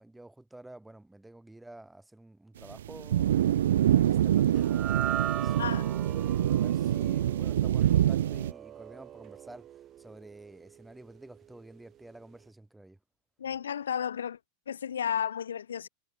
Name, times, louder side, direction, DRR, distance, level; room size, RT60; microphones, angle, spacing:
voice 1, 0.0-4.8 5.3-5.7 6.0-13.0, right 2 dB, 5° right, 3.3 m, -50 dB
sound 1, 2.6-8.5, right 11 dB, 80° right, 0.5 m, -25 dB
sound 2, 4.5-11.0, right 11 dB, 35° right, 0.9 m, -39 dB
voice 2, 5.6-5.9 13.4-14.4 14.7-15.9, left 8 dB, 85° left, 1.4 m, -32 dB
hypercardioid pair, 95°, 0 cm